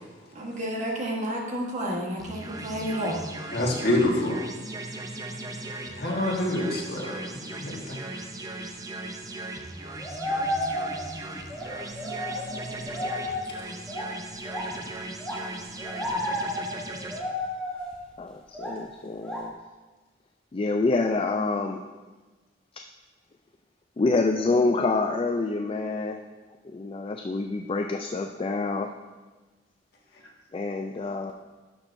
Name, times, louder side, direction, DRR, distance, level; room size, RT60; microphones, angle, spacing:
voice 1, 0.3-3.3, equal, 40° right, -1 dB, 1.4 m, -31 dB
sound 1, 2.2-17.2, right 2 dB, 20° right, 0.6 m, -38 dB
voice 2, 3.5-4.4 5.7-8.0 11.6-11.8 13.6-13.7, left 1 dB, 60° left, -2 dB, 1.6 m, -27 dB
sound 2, 10.0-11.2 11.5-14.8 15.2-18.2 18.5-18.9 19.2-19.5, left 1 dB, 5° left, 1.1 m, -32 dB
voice 3, 18.2-19.5 20.5-21.8 24.0-26.2 26.7-28.9 30.5-31.3, left 3 dB, 30° left, 4 dB, 0.3 m, -27 dB
11.5 x 6.3 x 2.6 m, 1.3 s
head